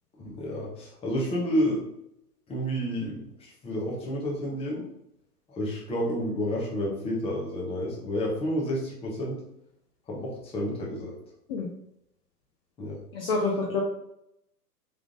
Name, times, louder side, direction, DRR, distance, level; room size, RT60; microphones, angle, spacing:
voice 1, 0.2-1.8 2.5-4.9 5.5-9.4 10.1-11.1 12.8-13.0, equal, 10° left, -3 dB, 1.0 m, -30 dB
voice 2, 13.1-13.8, left 3 dB, 35° left, -1 dB, 0.7 m, -27 dB
3.6 x 3.5 x 3.6 m, 0.79 s
hypercardioid pair, 125°, 49 cm